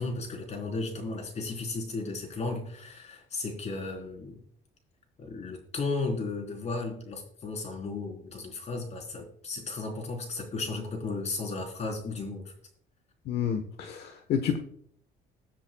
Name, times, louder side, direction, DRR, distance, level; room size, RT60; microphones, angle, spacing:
voice 1, 0.0-4.4 5.2-12.5, left 3 dB, 40° left, 3 dB, 4.1 m, -34 dB
voice 2, 13.3-14.6, left 8 dB, 70° left, 6 dB, 1.3 m, -29 dB
21.5 x 7.4 x 2.4 m, 0.63 s
cardioid pair, 110°, 17 cm